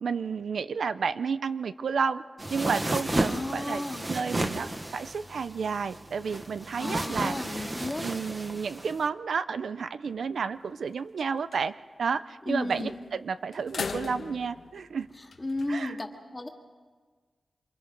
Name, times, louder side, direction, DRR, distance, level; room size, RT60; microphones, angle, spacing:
voice 1, 0.0-2.2 2.5-3.8 4.1-7.7 8.0-11.7 12.0-15.1 15.7-15.9, right 5 dB, 85° right, 13 dB, 0.7 m, -31 dB
sound 1, 2.4-9.0, right 1 dB, 20° right, 1.2 m, -33 dB
voice 2, 3.1-4.0 6.8-8.1 12.5-12.9 15.4-16.5, left 2 dB, 20° left, 2 dB, 2.2 m, -33 dB
sound 2, 10.0-10.6 11.0-11.1 11.3-11.6 12.7-13.1 13.5-15.8, left 4 dB, 65° left, 1.2 m, -39 dB
27.0 x 26.5 x 5.3 m, 1.5 s
wide cardioid pair, 175°, 0 cm